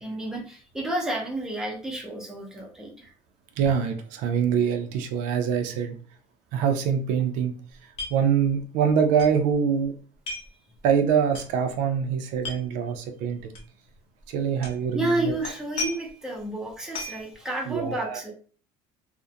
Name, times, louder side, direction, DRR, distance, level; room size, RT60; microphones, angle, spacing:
voice 1, 0.0-3.1 14.9-18.3, right 1 dB, 5° right, -1 dB, 0.5 m, -31 dB
voice 2, 3.6-6.0 6.5-7.5 8.1-9.9 10.8-13.5 14.3-15.3 17.7-18.2, right 7 dB, 75° right, 5 dB, 0.4 m, -24 dB
sound 1, 8.0-8.1 8.4-8.5 9.2-9.3 10.3-10.5 11.3-11.5 12.4-12.6 13.5-13.6 14.6-14.8 15.4-16.2 16.9-17.3, left 3 dB, 45° left, 0.7 m, -34 dB
2.4 x 2.1 x 2.6 m, 0.42 s
cardioid pair, 150°, 13 cm